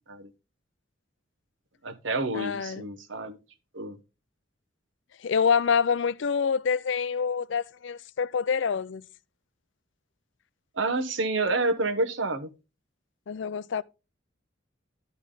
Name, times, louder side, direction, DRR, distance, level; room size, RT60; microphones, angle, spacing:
voice 1, 1.8-3.4 3.7-4.0 10.7-12.5, right 2 dB, 75° right, 1.1 m, -28 dB
voice 2, 2.3-2.9 5.2-9.0 13.3-13.8, left 6 dB, 70° left, 0.4 m, -26 dB
12.0 x 5.3 x 3.8 m
head